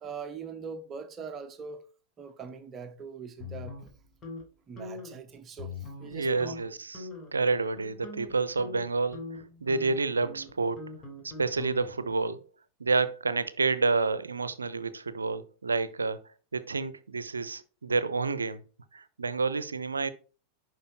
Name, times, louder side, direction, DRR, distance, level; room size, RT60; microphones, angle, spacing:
voice 1, 0.0-1.9 2.2-3.9 4.7-6.6, right 5 dB, 25° right, 1.0 m, -42 dB
sound 1, 3.4-4.4 4.8-5.2 5.6-6.1 6.4-6.6 6.9-7.4 7.8-12.1, left 3 dB, 25° left, 3.2 m, -42 dB
voice 2, 6.1-9.2 9.6-10.8 11.2-12.4 12.8-16.2 16.5-18.6 18.9-20.1, right 4 dB, 75° right, 0.7 m, -29 dB
10.5 x 4.7 x 4.5 m
figure-of-eight pair, 90°, 0 cm